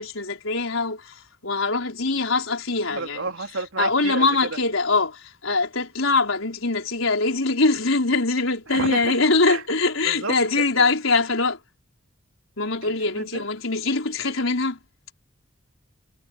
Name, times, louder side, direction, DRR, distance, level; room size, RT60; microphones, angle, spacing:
voice 1, 0.0-3.3 3.8-11.6 12.6-14.8, left 3 dB, 90° left, 4.6 m, -23 dB
voice 2, 2.9-4.6 8.7-9.2 9.4-9.6 10.0-10.3 10.8-10.9 12.8-13.4, right 4 dB, 80° right, 3.2 m, -31 dB
head